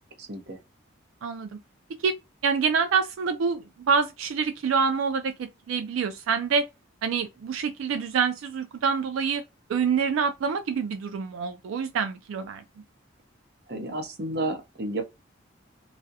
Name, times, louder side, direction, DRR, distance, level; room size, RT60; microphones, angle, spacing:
voice 1, 0.2-0.6 13.7-15.0, right 2 dB, 55° right, 0.6 m, -31 dB
voice 2, 2.4-6.7 7.0-9.4 9.7-12.6, right 6 dB, 85° right, 0.3 m, -26 dB
2.4 x 2.0 x 2.6 m
head